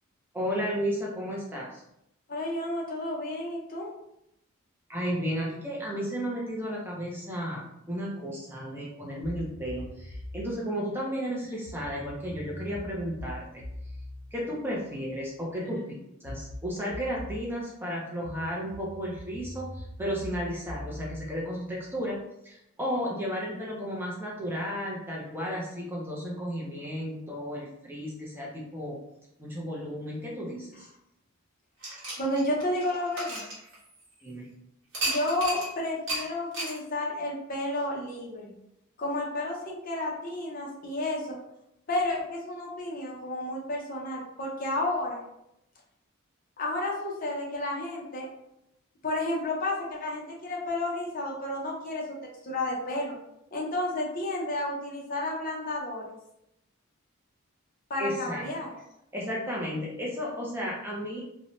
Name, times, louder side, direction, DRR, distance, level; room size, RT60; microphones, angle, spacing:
voice 1, 0.3-1.8 4.9-13.6 14.3-15.9 16.2-22.2 22.4-29.0 29.4-30.9 34.2-34.5 58.0-58.4 59.1-61.2, equal, 10° right, -4 dB, 0.4 m, -33 dB
voice 2, 2.3-3.9 32.2-33.4 35.0-38.5 39.0-41.4 41.9-45.2 46.6-48.3 49.0-52.0 52.4-53.1 53.5-56.1 57.9-58.7, left 1 dB, 40° left, -2 dB, 0.6 m, -31 dB
sound 1, 9.2-10.5 11.7-15.4 16.2-17.5 18.2-22.2, left 1 dB, 90° left, 0.6 m, -42 dB
sound 2, 31.8-34.2 34.9-35.7 36.1-36.2 36.5-36.8, right 2 dB, 65° right, 1.0 m, -33 dB
2.6 x 2.1 x 2.9 m, 0.82 s
head